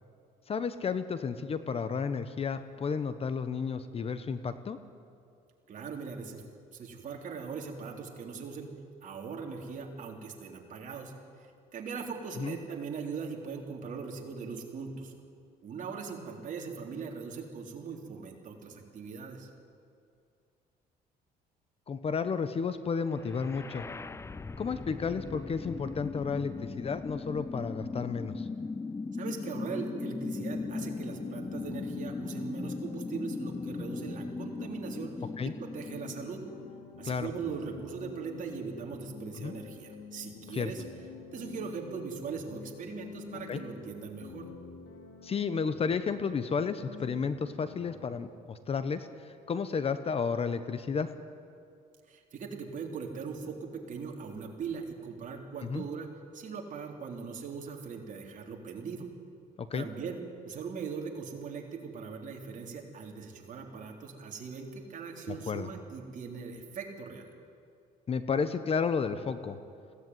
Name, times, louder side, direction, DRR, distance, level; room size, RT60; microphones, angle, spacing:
voice 1, 0.5-4.8 12.4-12.6 21.9-23.8 24.6-28.5 35.4-35.5 37.0-37.3 39.4-39.5 40.5-40.7 43.5-43.6 45.2-49.1 49.5-51.1 55.6-55.8 59.6-59.9 65.3-65.7 68.1-69.6, left 5 dB, 35° left, 11 dB, 1.0 m, -32 dB
voice 2, 5.7-6.4 6.7-8.7 9.0-15.1 15.6-19.5 29.1-36.4 37.0-40.8 41.3-44.5 52.1-56.1 56.3-59.1 59.7-60.2 60.4-67.3, right 5 dB, 50° right, 1 dB, 3.6 m, -40 dB
sound 1, 23.1-37.1, left 4 dB, 15° left, 0.5 m, -38 dB
sound 2, 30.4-48.1, left 5 dB, 80° left, 3.4 m, -49 dB
21.0 x 16.5 x 9.5 m, 2.4 s
cardioid pair, 110°, 17 cm